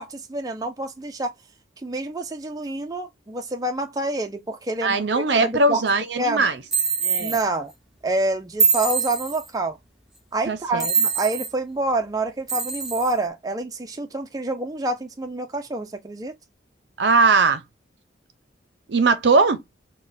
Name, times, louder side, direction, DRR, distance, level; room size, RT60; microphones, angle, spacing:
voice 1, 0.0-1.3 1.8-5.8 6.2-6.5 7.2-7.7 8.0-9.8 10.3-16.3, right 2 dB, 20° right, 0.4 m, -27 dB
voice 2, 4.8-6.6 7.0-7.3 10.5-10.9 17.0-17.6 18.9-19.6, right 3 dB, 65° right, 0.6 m, -20 dB
sound 1, 6.7-7.4 8.6-9.5 10.8-11.5 12.5-13.1, right 5 dB, ahead, 0.7 m, -23 dB
4.0 x 2.1 x 2.4 m
head